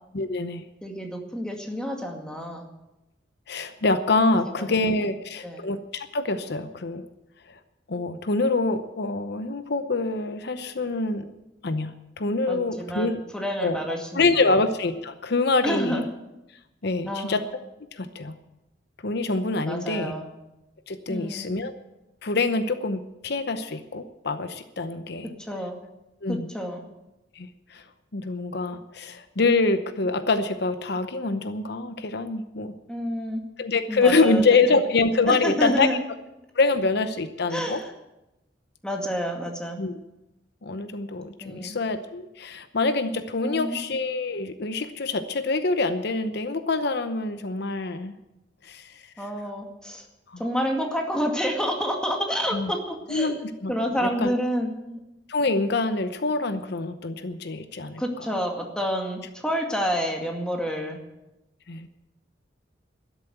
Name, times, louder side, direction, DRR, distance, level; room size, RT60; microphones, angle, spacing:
voice 1, 0.1-0.6 3.5-7.0 7.9-11.3 11.6-13.2 13.6-13.8 14.1-16.0 16.8-17.4 17.9-18.4 19.0-20.1 20.9-21.7 22.2-25.3 26.2-26.5 27.4-27.8 28.1-32.7 33.6-35.9 36.6-37.8 39.8-39.9 40.6-48.1 48.6-49.0 50.3-50.4 52.5-52.7 53.1-53.7 54.0-54.3 55.3-58.0 61.7-61.9, left 3 dB, 65° left, 10 dB, 0.8 m, -25 dB
voice 2, 0.8-2.6 4.4-4.7 5.4-5.6 12.5-14.3 15.6-16.0 17.1-17.4 19.7-20.3 21.1-21.5 25.5-25.7 26.3-26.8 32.9-33.4 33.9-34.8 35.3-36.0 37.5-37.9 38.8-39.8 41.4-41.8 43.4-43.8 49.2-50.0 50.4-53.3 53.7-55.0 58.0-61.0, equal, 5° left, 1 dB, 2.2 m, -29 dB
12.5 x 11.0 x 7.9 m, 0.94 s
head